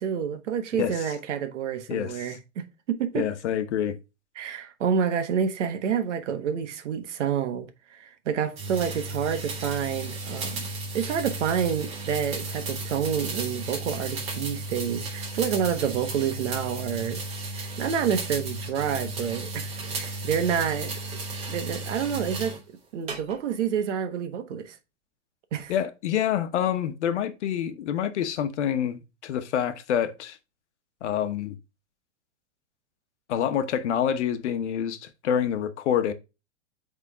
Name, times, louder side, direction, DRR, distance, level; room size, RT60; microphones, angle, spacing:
voice 1, 0.0-2.4 2.9-3.3 4.4-10.7 10.9-17.2 17.5-20.9 21.5-22.5 22.9-24.7 25.5-25.7, right 8 dB, 80° right, 1.3 m, -28 dB
voice 2, 0.7-1.1 1.9-2.4 3.1-3.9 25.7-30.4 31.0-31.6 33.3-36.1, left 9 dB, 70° left, 1.1 m, -27 dB
sound 1, 8.6-22.6 23.1-23.6, right 2 dB, 20° right, 1.1 m, -34 dB
8.1 x 3.7 x 3.5 m
supercardioid pair, 170°, 35 cm